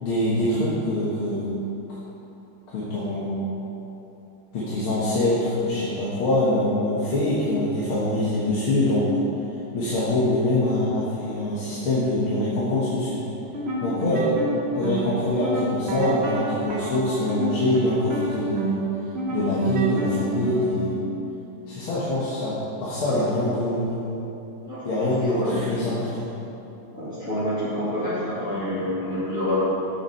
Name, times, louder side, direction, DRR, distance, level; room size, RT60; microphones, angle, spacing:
voice 1, 0.0-1.5 1.9-2.0 2.7-3.5 4.5-9.1 9.7-13.2 13.8-14.3 14.8-18.8 19.3-20.9 21.7-24.2 24.9-26.3, left 1 dB, 75° left, -8 dB, 2.3 m, -24 dB
sound 1, 13.4-20.9, right 2 dB, 50° right, 0.8 m, -29 dB
voice 2, 24.6-25.9 26.9-29.5, equal, 35° left, -14 dB, 2.7 m, -28 dB
8.9 x 7.5 x 5.6 m, 3.0 s
omnidirectional pair, 2.3 m